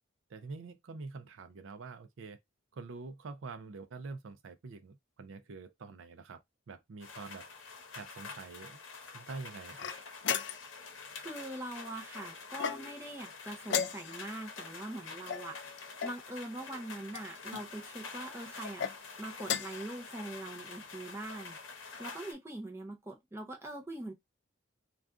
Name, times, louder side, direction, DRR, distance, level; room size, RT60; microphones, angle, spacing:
voice 1, 0.3-2.4 2.7-7.5 8.0-8.8 9.1-9.9, right 4 dB, 70° right, 0.4 m, -46 dB
sound 1, 7.0-22.3, left 4 dB, 75° left, 0.8 m, -47 dB
sound 2, 9.8-10.8 12.5-13.1 13.7-14.4 15.3-16.2 17.1-17.7 18.6-19.0 19.4-19.9, left 8 dB, 55° left, 0.3 m, -36 dB
voice 2, 11.2-18.9 19.2-24.1, right 1 dB, 10° right, 0.5 m, -43 dB
2.5 x 2.3 x 3.5 m
head